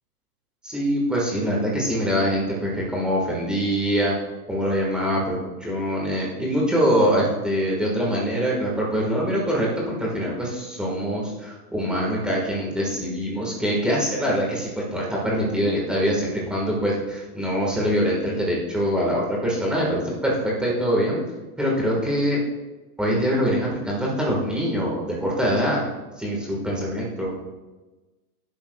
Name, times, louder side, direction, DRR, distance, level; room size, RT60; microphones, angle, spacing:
voice 1, 0.6-4.1 4.5-21.2 21.6-22.4 23.0-25.9 26.2-27.3, equal, ahead, -4 dB, 1.4 m, -24 dB
15.0 x 10.5 x 2.3 m, 1.2 s
supercardioid pair, 170°, 46 cm